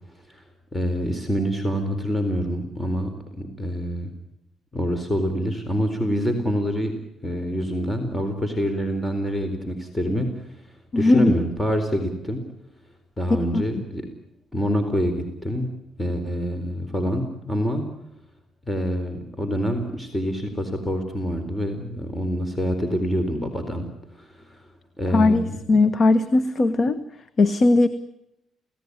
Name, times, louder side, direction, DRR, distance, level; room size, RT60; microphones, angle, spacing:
voice 1, 0.7-3.1 3.4-4.1 4.7-6.9 7.2-10.6 10.9-12.4 13.2-14.1 14.5-15.7 16.0-17.8 18.7-24.6 25.0-25.6, equal, 10° left, 7 dB, 4.2 m, -26 dB
voice 2, 10.9-11.3 13.5-13.6 25.1-27.0 27.4-27.9, left 2 dB, 45° left, 13 dB, 1.5 m, -18 dB
29.0 x 17.5 x 9.8 m, 0.85 s
cardioid pair, 90°, 0 cm